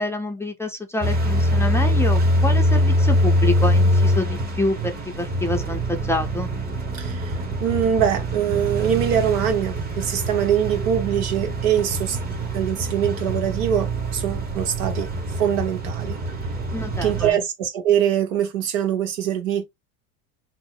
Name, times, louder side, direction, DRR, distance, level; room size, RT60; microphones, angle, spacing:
voice 1, 0.0-6.5 16.7-17.4, left 1 dB, 5° left, 0.5 m, -27 dB
sound 1, 1.0-17.3, equal, 20° right, 0.9 m, -23 dB
voice 2, 6.9-12.2 12.5-15.1 15.4-16.2 17.0-19.6, right 9 dB, 75° right, 1.2 m, -23 dB
2.8 x 2.0 x 3.8 m
supercardioid pair, 110°, 43 cm